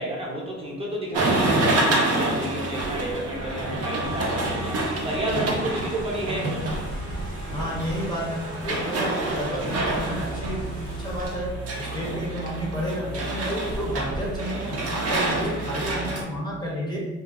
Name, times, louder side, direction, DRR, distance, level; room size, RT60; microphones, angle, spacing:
voice 1, 0.0-6.6, right 1 dB, 20° right, -3 dB, 0.8 m, -31 dB
sound 1, 1.1-16.2, right 2 dB, 55° right, 0.6 m, -27 dB
sound 2, 4.0-11.4, left 1 dB, 90° left, 0.7 m, -41 dB
voice 2, 7.5-11.5 11.8-17.1, equal, 15° left, -5 dB, 0.6 m, -31 dB
2.5 x 2.4 x 2.5 m, 1.2 s
cardioid pair, 90°, 30 cm